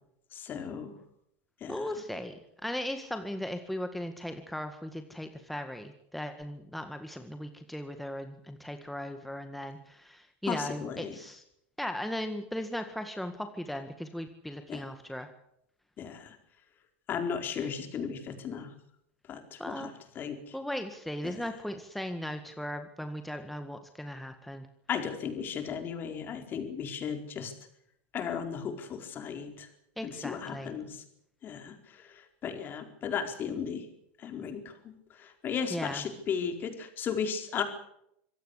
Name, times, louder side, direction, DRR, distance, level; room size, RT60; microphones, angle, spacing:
voice 1, 0.3-1.0 1.6-1.9 10.5-11.2 14.7-14.8 16.0-16.4 17.1-18.7 19.3-20.6 21.2-21.5 24.9-27.5 28.1-29.7 30.0-31.0 31.4-33.9 34.2-37.6, left 7 dB, 30° left, 6 dB, 4.5 m, -36 dB
voice 2, 1.7-2.3 2.6-11.4 11.8-15.3 19.6-19.9 20.5-24.7 30.0-30.7 35.7-36.0, left 1 dB, ahead, 7 dB, 1.8 m, -37 dB
25.5 x 16.5 x 8.3 m, 0.75 s
supercardioid pair, 130°, 6 cm